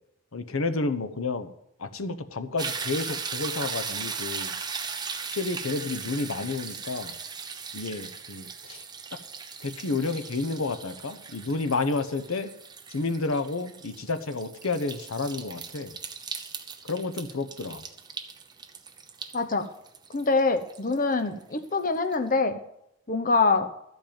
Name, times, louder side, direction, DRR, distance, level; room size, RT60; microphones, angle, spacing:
voice 1, 0.3-1.5 1.8-4.5 5.3-7.1 7.7-8.8 9.1-9.2 9.6-12.5 12.9-15.9 16.8-17.8, left 3 dB, 85° left, 9 dB, 0.9 m, -30 dB
sound 1, 2.6-21.6 22.1-22.2, right 5 dB, 20° right, 0.8 m, -38 dB
voice 2, 19.3-19.7 20.1-22.6 23.1-23.7, left 3 dB, 40° left, 7 dB, 0.8 m, -24 dB
13.5 x 5.4 x 8.8 m, 0.76 s
head